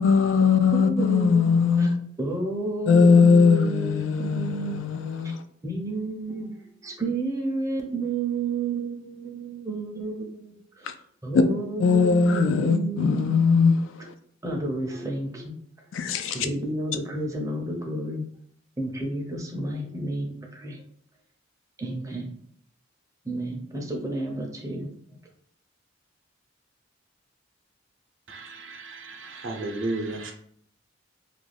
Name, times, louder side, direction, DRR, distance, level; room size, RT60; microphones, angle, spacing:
voice 1, 0.0-1.9 2.9-5.4 11.3-11.4 11.8-13.9 15.9-16.5, left 5 dB, 75° left, 8 dB, 0.3 m, -20 dB
voice 2, 0.7-1.4 1.8-1.9 2.2-4.8 5.6-6.5 6.8-10.9 11.2-13.4 14.4-15.5 16.3-18.2 18.8-20.8 21.8-22.4 23.2-25.2, right 2 dB, 15° right, 0 dB, 0.5 m, -31 dB
voice 3, 28.3-30.3, right 2 dB, 70° right, 2 dB, 0.6 m, -33 dB
2.5 x 2.2 x 3.2 m, 0.64 s
head